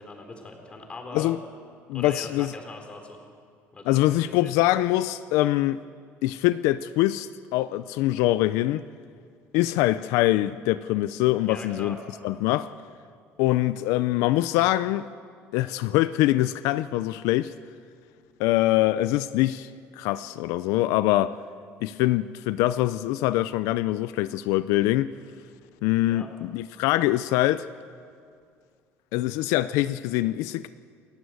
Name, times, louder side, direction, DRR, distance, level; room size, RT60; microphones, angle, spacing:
voice 1, 0.0-1.3 1.9-3.2 3.7-4.5 11.5-12.0 26.0-26.3, left 2 dB, 25° left, 3.7 m, -41 dB
voice 2, 1.9-2.5 3.9-5.8 6.2-8.8 9.5-12.0 12.2-12.7 13.4-15.1 15.5-17.5 18.4-19.7 20.0-21.3 21.8-25.1 25.8-27.7 29.1-30.7, left 16 dB, 90° left, 0.5 m, -24 dB
28.5 x 14.5 x 7.9 m
cardioid pair, 140°, 5 cm